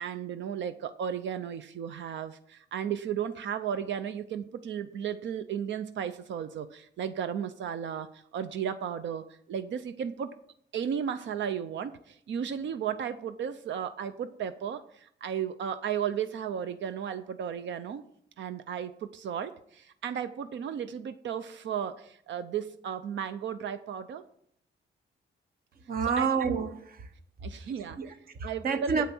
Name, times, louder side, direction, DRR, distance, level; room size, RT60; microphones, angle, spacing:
voice 1, 0.0-10.4 10.7-18.0 18.4-24.2 26.2-26.6 27.4-28.0 28.4-29.1, right 8 dB, 85° right, 0.6 m, -34 dB
voice 2, 25.9-27.1 28.0-29.1, right 5 dB, 55° right, 1.0 m, -29 dB
8.9 x 8.7 x 6.1 m
wide cardioid pair, 170°, 19 cm